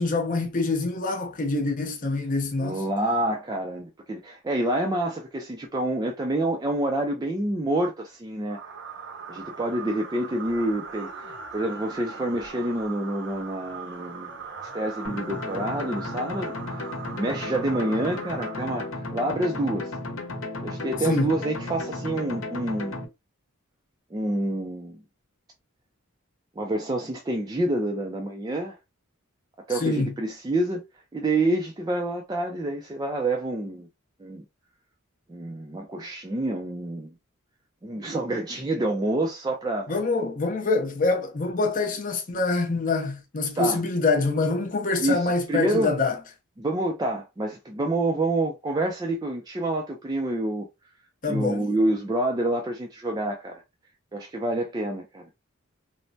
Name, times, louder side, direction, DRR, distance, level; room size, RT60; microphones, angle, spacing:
voice 1, 0.0-2.8 21.0-21.4 29.8-30.2 39.9-46.2 51.2-51.7, left 3 dB, 40° left, 0.6 m, -25 dB
voice 2, 2.6-8.6 9.3-14.4 14.7-19.9 20.6-23.0 24.1-25.0 26.6-28.8 29.7-30.8 31.1-33.9 34.2-34.4 35.3-37.1 37.8-40.0 43.6-43.8 45.0-45.9 46.6-50.7 51.3-53.6 54.1-55.2, right 1 dB, 20° right, 0.3 m, -28 dB
sound 1, 8.5-19.2, right 5 dB, 60° right, 0.7 m, -40 dB
sound 2, 15.0-23.0, left 2 dB, 70° left, 0.8 m, -34 dB
3.2 x 2.0 x 2.6 m
head